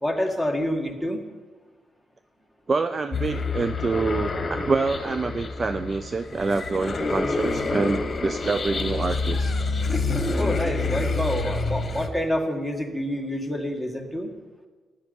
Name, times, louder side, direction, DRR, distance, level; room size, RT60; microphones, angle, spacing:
voice 1, 0.0-1.2 10.3-14.3, equal, 5° right, 5 dB, 1.7 m, -27 dB
voice 2, 2.7-9.5, right 4 dB, 30° right, 11 dB, 0.4 m, -26 dB
sound 1, 3.1-12.1, left 3 dB, 35° left, 1.3 m, -27 dB
14.0 x 10.5 x 5.3 m, 1.4 s
cardioid pair, 90°, 0 cm